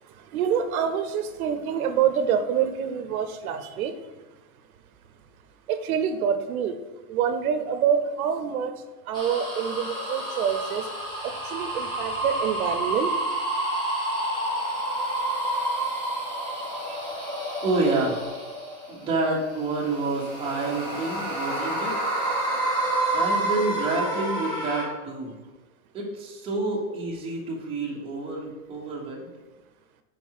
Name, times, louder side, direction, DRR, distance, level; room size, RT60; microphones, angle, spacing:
voice 1, 0.3-3.9 5.7-6.8 7.1-8.7 9.1-10.9 11.2-13.1 16.9-17.0, right 8 dB, 80° right, 8 dB, 0.8 m, -26 dB
sound 1, 9.1-19.0 19.6-24.8, right 1 dB, 10° left, 1.5 m, -29 dB
voice 2, 17.6-18.3 18.9-22.0 23.1-25.3 25.9-29.3, right 3 dB, 15° right, -4 dB, 1.2 m, -28 dB
5.7 x 4.9 x 4.7 m, 1.2 s
supercardioid pair, 165°, 42 cm